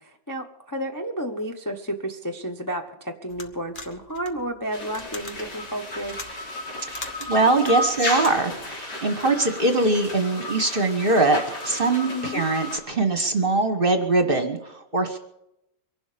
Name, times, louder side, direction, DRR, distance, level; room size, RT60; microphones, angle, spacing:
voice 1, 0.0-6.2 12.1-12.4, equal, 15° left, 2 dB, 0.8 m, -31 dB
sound 1, 3.3-8.6, left 3 dB, 30° left, 1.3 m, -41 dB
sound 2, 4.7-12.8, left 1 dB, 60° left, 4.1 m, -33 dB
voice 2, 6.9-15.2, right 2 dB, 30° right, 6 dB, 1.4 m, -22 dB
23.5 x 11.5 x 5.2 m, 0.83 s
omnidirectional pair, 2.0 m